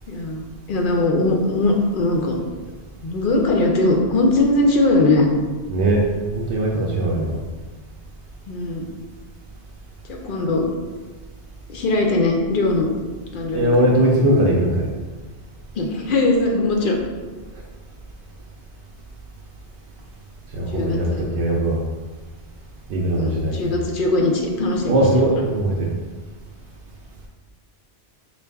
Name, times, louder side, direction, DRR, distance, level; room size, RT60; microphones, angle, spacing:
voice 1, 0.1-2.4 3.0-5.3 7.0-7.2 8.5-8.9 10.1-10.7 11.7-12.9 13.3-13.7 15.8-17.0 20.7-21.2 23.2-25.2, left 2 dB, 60° left, 1 dB, 0.6 m, -20 dB
voice 2, 5.7-6.0 6.3-7.4 13.5-14.9 20.5-21.8 22.9-23.7 24.9-25.9, right 1 dB, 85° right, -3 dB, 0.9 m, -20 dB
4.6 x 2.5 x 3.4 m, 1.3 s
omnidirectional pair, 1.1 m